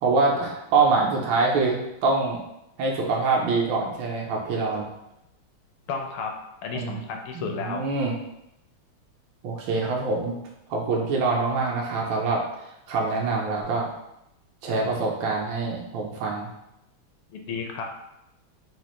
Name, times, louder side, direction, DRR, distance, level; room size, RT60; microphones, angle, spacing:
voice 1, 0.0-2.4 2.8-4.9 6.7-7.0 7.3-8.2 9.4-10.4 10.7-12.4 12.9-13.9 14.6-16.5, right 3 dB, 75° right, -1 dB, 1.3 m, -25 dB
voice 2, 5.9-6.3 6.6-7.8 17.3-17.8, left 5 dB, 80° left, 2 dB, 1.4 m, -32 dB
4.1 x 2.4 x 3.0 m, 0.86 s
omnidirectional pair, 2.3 m